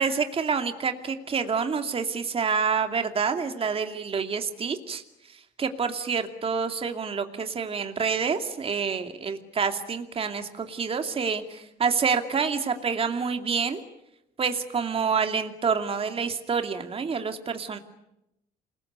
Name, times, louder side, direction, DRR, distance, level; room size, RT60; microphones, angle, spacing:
voice 1, 0.0-5.0 5.6-13.8 14.4-17.8, right 5 dB, 35° right, 6 dB, 2.6 m, -27 dB
28.5 x 21.5 x 9.5 m, 0.87 s
cardioid pair, 110°, 17 cm